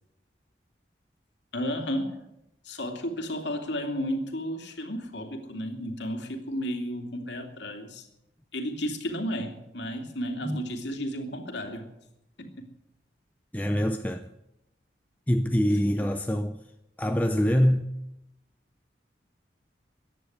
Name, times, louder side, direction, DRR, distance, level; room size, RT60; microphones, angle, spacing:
voice 1, 1.5-2.2 2.6-8.1 8.5-11.9 12.4-12.7 15.9-16.1, equal, 85° left, 2.7 m, -33 dB
voice 2, 13.5-14.3 15.3-16.6 17.0-17.9, equal, 10° left, 0.5 m, -24 dB
15.5 x 10.0 x 9.4 m
head